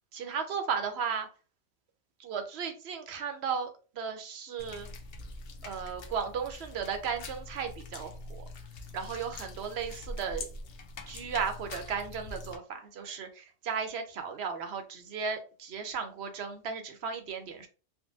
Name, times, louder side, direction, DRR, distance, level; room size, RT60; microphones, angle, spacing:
voice 1, 0.1-1.3 2.2-4.9 5.6-8.4 8.9-10.5 11.1-17.7, right 6 dB, 65° right, 0.8 m, -35 dB
sound 1, 4.6-12.6, left 2 dB, 60° left, 0.7 m, -44 dB
3.5 x 2.1 x 2.6 m
omnidirectional pair, 1.2 m